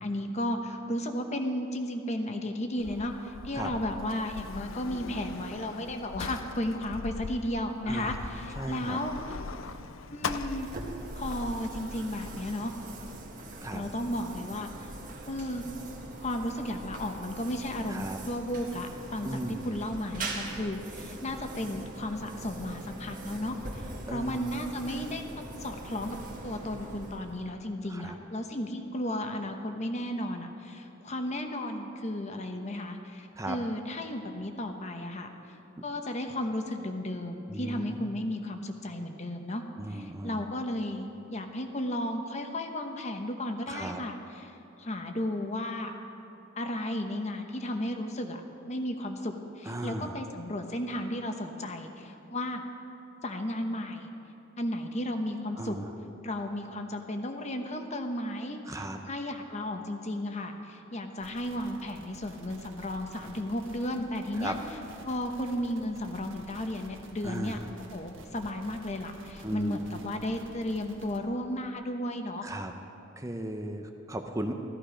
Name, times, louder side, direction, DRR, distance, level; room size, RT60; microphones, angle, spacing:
voice 1, 0.0-9.4 10.1-10.7 11.1-12.7 13.6-14.9 15.3-15.6 16.2-25.2 25.6-26.2 26.4-35.3 35.8-39.6 39.9-44.5 44.8-45.9 46.6-48.4 48.7-52.6 53.2-54.1 54.6-55.8 56.2-64.6 65.0-67.6 67.9-72.5, left 1 dB, 35° left, 5 dB, 1.0 m, -34 dB
Sliding door, 2.8-11.4, left 4 dB, 85° left, 0.6 m, -41 dB
voice 2, 7.9-8.3 8.6-9.0 13.6-13.8 17.9-18.2 19.2-19.7 24.1-24.6 27.9-28.2 33.4-33.6 37.5-38.1 39.8-40.4 43.7-44.0 49.7-50.2 55.6-55.9 58.7-59.0 64.4-64.5 67.2-67.6 69.4-70.0 72.4-72.7 73.2-74.5, right 1 dB, 15° right, 5 dB, 0.6 m, -36 dB
sound 1, 10.2-27.6, right 2 dB, 45° right, 1.6 m, -42 dB
sound 2, 61.2-71.2, right 2 dB, 70° right, 1.5 m, -51 dB
14.0 x 14.0 x 5.1 m, 2.8 s
head